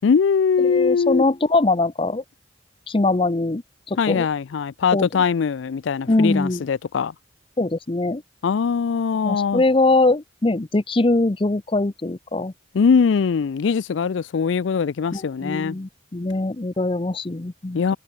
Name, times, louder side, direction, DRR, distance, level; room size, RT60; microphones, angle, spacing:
voice 1, 0.0-1.2 4.0-7.1 8.4-9.6 12.7-15.8 17.7-18.0, left 6 dB, 80° left, 0.4 m, -21 dB
voice 2, 0.6-2.2 2.9-3.6 3.9-4.3 4.9-5.1 6.1-6.6 7.6-8.2 9.2-12.5 15.1-18.0, left 2 dB, 30° left, 0.6 m, -22 dB
head